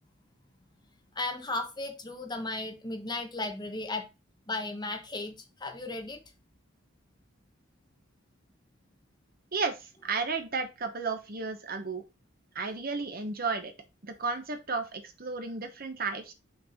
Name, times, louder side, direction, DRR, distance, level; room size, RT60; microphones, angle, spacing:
voice 1, 1.1-4.1 4.5-6.2, left 2 dB, 20° left, 1.1 m, -35 dB
voice 2, 10.0-12.0 12.5-13.7 14.0-16.3, right 4 dB, 45° right, 1.1 m, -33 dB
6.1 x 4.6 x 5.0 m
head